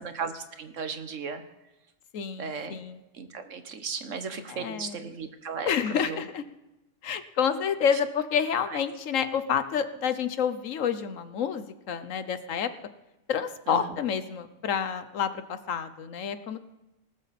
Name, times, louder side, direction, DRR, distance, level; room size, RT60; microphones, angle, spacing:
voice 1, 0.0-1.4 2.4-2.8 3.1-5.7 6.0-6.2 13.7-13.9, right 5 dB, 70° right, 9 dB, 1.5 m, -36 dB
voice 2, 2.1-3.0 4.5-5.1 5.7-6.5 7.0-12.7 13.3-16.6, left 7 dB, 75° left, 12 dB, 1.3 m, -29 dB
19.5 x 12.5 x 4.2 m, 0.96 s
omnidirectional pair, 1.3 m